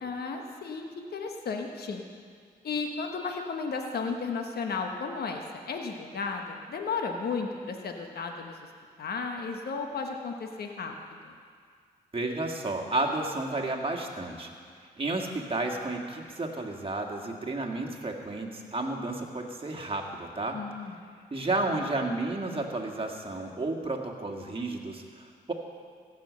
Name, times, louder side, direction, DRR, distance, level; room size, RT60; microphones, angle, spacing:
voice 1, 0.0-2.0 2.6-8.7 9.0-10.9 11.2-11.3 20.5-21.0, left 4 dB, 65° left, 3 dB, 1.3 m, -34 dB
voice 2, 12.1-14.5 15.0-20.6 21.3-25.5, right 2 dB, 30° right, 1 dB, 1.9 m, -32 dB
16.0 x 6.5 x 6.3 m, 2.1 s
cardioid pair, 60°, 17 cm